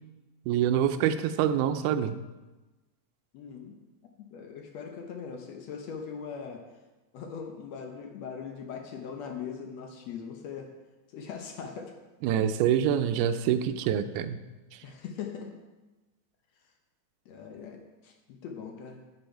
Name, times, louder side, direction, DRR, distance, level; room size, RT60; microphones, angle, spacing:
voice 1, 0.5-2.2 12.2-14.4, right 9 dB, 85° right, 11 dB, 2.1 m, -26 dB
voice 2, 3.3-3.7 4.2-6.6 7.1-10.7 11.1-11.9 14.8-15.5 17.3-19.0, left 6 dB, 70° left, 3 dB, 1.8 m, -40 dB
9.4 x 7.1 x 4.6 m, 1.1 s
omnidirectional pair, 3.6 m